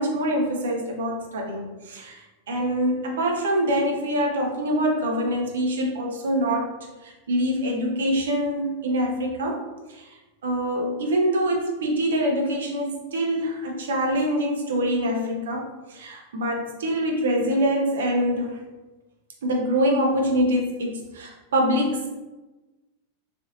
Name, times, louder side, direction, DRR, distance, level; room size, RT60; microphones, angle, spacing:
voice 1, 0.0-6.7 7.0-9.6 9.9-10.1 10.4-18.6 19.4-22.1, equal, 60° right, 1 dB, 0.6 m, -25 dB
3.3 x 2.7 x 2.6 m, 1.2 s
figure-of-eight pair, 90°, 0 cm